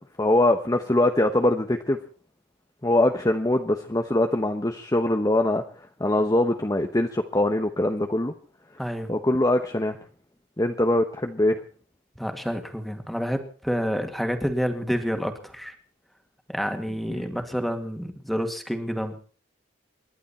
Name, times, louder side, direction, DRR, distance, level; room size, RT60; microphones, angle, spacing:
voice 1, 0.2-2.0 2.8-5.6 6.0-8.3 9.1-10.0 10.6-11.6 17.1-17.3, left 1 dB, 20° left, 5 dB, 1.0 m, -22 dB
voice 2, 8.8-9.1 12.2-15.7 16.5-19.2, equal, ahead, 6 dB, 2.2 m, -28 dB
29.0 x 11.5 x 4.3 m, 0.41 s
head